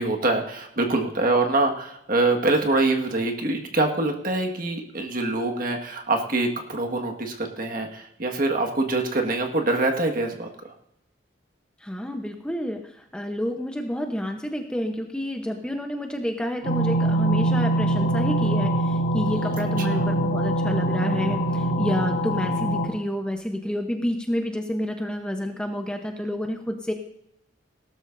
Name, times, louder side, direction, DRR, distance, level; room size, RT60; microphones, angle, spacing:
voice 1, 0.0-10.7 19.3-20.1, right 2 dB, 45° right, 3 dB, 1.7 m, -25 dB
voice 2, 11.8-12.8 13.1-26.9, equal, 5° left, 4 dB, 0.8 m, -29 dB
sound 1, 16.6-22.9, right 1 dB, 70° left, 2.6 m, -23 dB
18.0 x 13.0 x 2.6 m, 0.81 s
head